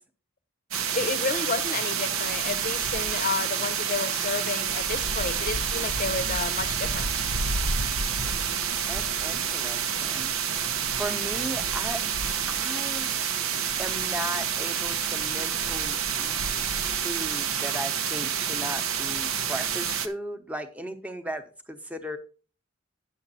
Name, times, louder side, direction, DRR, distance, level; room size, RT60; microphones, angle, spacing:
sound 1, 0.7-20.1, right 7 dB, 90° right, 1.0 m, -28 dB
voice 1, 0.9-7.1, left 4 dB, 40° left, 14 dB, 0.7 m, -31 dB
voice 2, 8.9-10.3 11.0-12.0 12.5-13.1 13.8-16.5 17.0-22.2, right 1 dB, 5° right, 5 dB, 1.0 m, -36 dB
9.9 x 7.2 x 4.2 m, 0.36 s
head